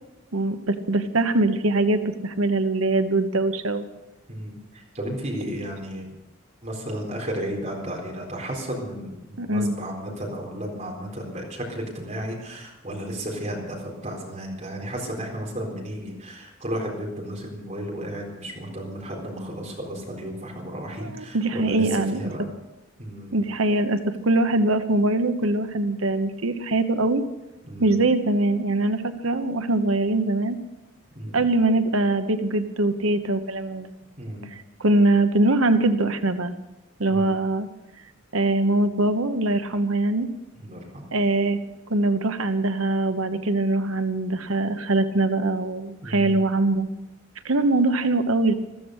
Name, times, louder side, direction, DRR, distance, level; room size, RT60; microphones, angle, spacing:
voice 1, 0.3-3.9 9.4-9.7 21.0-22.2 23.3-27.2 27.8-30.6 31.3-33.9 34.5-36.5 37.0-37.7 38.3-40.3 41.1-41.6 41.9-46.9 47.4-48.5, right 2 dB, 80° right, 9 dB, 1.1 m, -22 dB
voice 2, 4.3-6.1 6.6-22.5 23.0-23.4 27.6-27.9 31.1-31.4 34.2-34.5 37.1-37.3 40.6-41.0 46.0-46.4, equal, 35° right, -1 dB, 4.1 m, -33 dB
14.5 x 14.5 x 6.5 m, 1.0 s
head